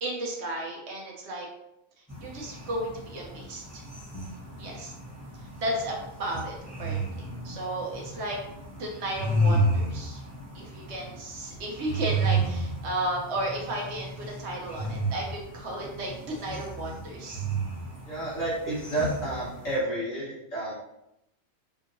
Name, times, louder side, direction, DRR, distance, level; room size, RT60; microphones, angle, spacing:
voice 1, 0.0-1.5 2.2-3.8 4.6-4.9 5.6-8.4 8.8-10.2 10.5-17.5, right 1 dB, 60° right, -1 dB, 0.9 m, -34 dB
sound 1, 2.1-19.8, right 1 dB, 10° left, 1.1 m, -32 dB
voice 2, 18.1-20.7, right 2 dB, 65° left, -10 dB, 1.7 m, -30 dB
3.5 x 2.7 x 2.6 m, 0.84 s
omnidirectional pair, 1.5 m